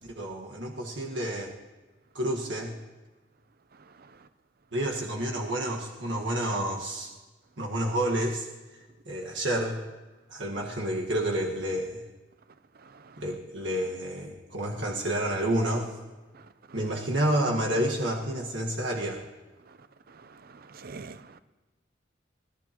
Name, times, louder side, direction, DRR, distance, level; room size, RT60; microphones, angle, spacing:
voice 1, 0.0-1.5 2.1-2.8 4.7-7.1 7.6-9.8 10.3-12.0 13.2-16.0 16.7-19.2, right 1 dB, 85° right, 1.6 m, -29 dB
voice 2, 20.2-21.4, right 4 dB, 55° right, 0.6 m, -45 dB
25.5 x 17.0 x 3.0 m
head